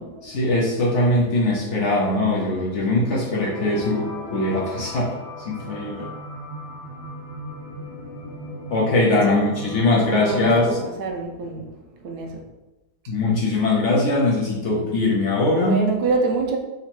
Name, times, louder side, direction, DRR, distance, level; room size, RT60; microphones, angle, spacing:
voice 1, 0.2-5.1 5.4-6.1 8.7-10.8 13.1-15.8, left 2 dB, 80° left, -4 dB, 0.6 m, -21 dB
sound 1, 3.4-10.8, left 1 dB, 65° left, 1.4 m, -36 dB
voice 2, 10.1-11.7 12.0-12.4 15.6-16.6, right 3 dB, 65° right, 1 dB, 1.0 m, -26 dB
3.9 x 2.9 x 4.3 m, 1.0 s
omnidirectional pair, 2.3 m